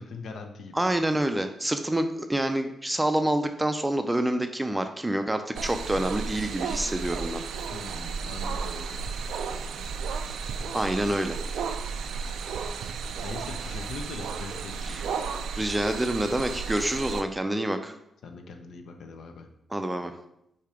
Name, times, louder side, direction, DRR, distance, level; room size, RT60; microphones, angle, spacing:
voice 1, 0.0-0.9 7.7-8.8 12.8-15.0 18.2-19.5, left 4 dB, 70° left, 5 dB, 0.7 m, -41 dB
voice 2, 0.7-7.4 10.7-11.4 14.9-15.0 15.6-18.0 19.7-20.1, right 1 dB, 10° right, 7 dB, 0.4 m, -27 dB
sound 1, 5.6-17.2, right 5 dB, 90° right, 0.4 m, -33 dB
6.6 x 2.9 x 4.9 m, 0.79 s
cardioid pair, 130°, 0 cm